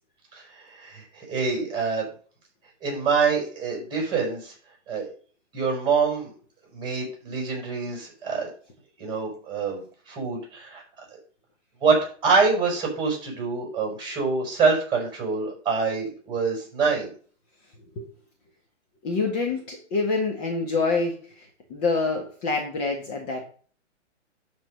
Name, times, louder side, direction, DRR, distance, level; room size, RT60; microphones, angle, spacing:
voice 1, 0.3-2.0 2.8-4.5 4.9-5.1 5.5-6.3 6.7-8.5 9.0-10.8 11.8-12.0 12.2-17.1, right 4 dB, 10° right, -1 dB, 5.5 m, -25 dB
voice 2, 19.0-23.5, left 3 dB, 35° left, 1 dB, 1.8 m, -26 dB
12.5 x 4.3 x 5.3 m, 0.42 s
hypercardioid pair, 150°, 37 cm